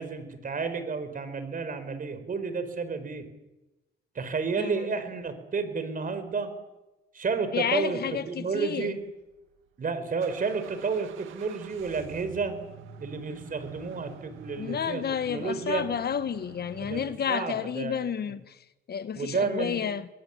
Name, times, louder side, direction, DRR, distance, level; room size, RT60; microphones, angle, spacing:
voice 1, 0.0-3.3 4.1-6.5 7.1-8.0 8.3-9.0 9.8-12.5 13.0-15.9 16.8-18.0 19.1-19.8, right 5 dB, 45° right, 5.1 m, -31 dB
voice 2, 4.6-4.9 7.5-8.9 14.6-20.1, left 8 dB, 55° left, 1.4 m, -31 dB
sound 1, 9.2-17.1, right 8 dB, 85° right, 2.1 m, -47 dB
23.0 x 22.5 x 8.7 m
cardioid pair, 90°, 20 cm